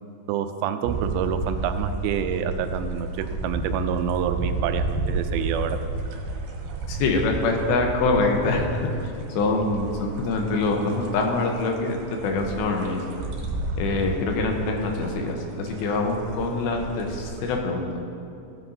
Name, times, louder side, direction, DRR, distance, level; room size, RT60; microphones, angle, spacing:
voice 1, 0.3-5.8, right 8 dB, 85° right, 8 dB, 2.7 m, -27 dB
sound 1, 0.8-17.6, right 3 dB, 70° right, 2.9 m, -32 dB
voice 2, 6.9-8.8 9.4-12.0 12.2-13.0 13.8-17.9, left 3 dB, 85° left, 2 dB, 3.2 m, -24 dB
16.0 x 7.9 x 2.7 m, 2.7 s
omnidirectional pair, 5.0 m